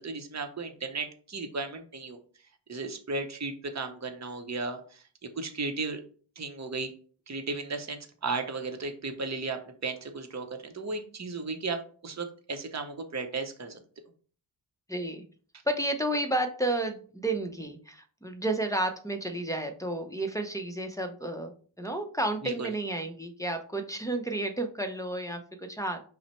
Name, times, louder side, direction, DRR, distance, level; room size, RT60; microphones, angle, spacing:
voice 1, 0.0-2.2 2.7-5.0 5.4-6.0 6.4-6.9 7.3-13.8 22.4-22.7, right 3 dB, 35° right, 5 dB, 0.7 m, -35 dB
voice 2, 14.9-15.2 15.7-21.5 21.8-26.0, right 1 dB, 5° left, 3 dB, 0.6 m, -31 dB
5.5 x 2.1 x 4.3 m, 0.42 s
wide cardioid pair, 50°, 48 cm